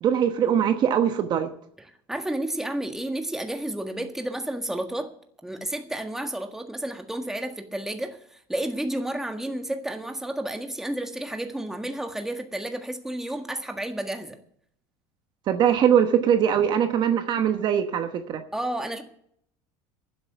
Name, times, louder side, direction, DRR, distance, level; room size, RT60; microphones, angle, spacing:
voice 1, 0.0-1.5 15.5-18.4, right 9 dB, 45° right, 8 dB, 1.1 m, -22 dB
voice 2, 1.8-5.1 5.4-14.4 18.5-19.0, right 1 dB, 5° right, 5 dB, 1.6 m, -31 dB
10.5 x 7.9 x 9.3 m, 0.64 s
supercardioid pair, 115°, 11 cm